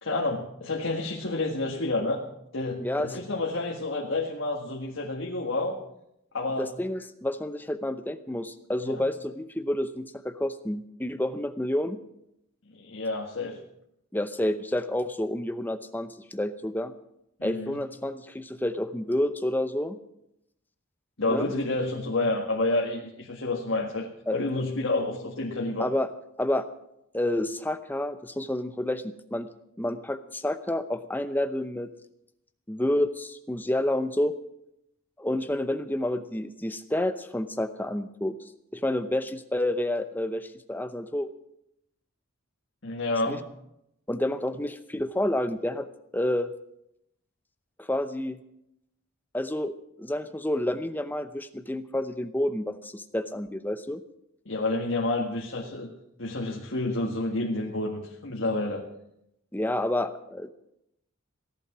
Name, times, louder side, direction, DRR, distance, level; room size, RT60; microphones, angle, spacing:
voice 1, 0.0-2.2 2.5-5.8 6.3-6.7 8.8-9.0 12.7-13.6 17.4-17.8 21.2-25.9 42.8-43.4 54.5-55.9 56.2-58.8, left 2 dB, 60° left, -1 dB, 1.8 m, -29 dB
voice 2, 6.6-12.0 14.1-16.9 17.4-20.0 21.3-21.5 24.3-24.4 25.8-26.1 26.4-26.7 27.1-29.5 29.8-31.9 32.7-34.3 35.2-38.4 38.7-41.3 43.3-43.4 44.1-45.9 46.1-46.5 47.8-48.4 49.3-49.7 50.0-54.0 59.5-60.5, left 1 dB, 10° left, 10 dB, 0.7 m, -29 dB
17.0 x 11.5 x 6.1 m, 0.82 s
head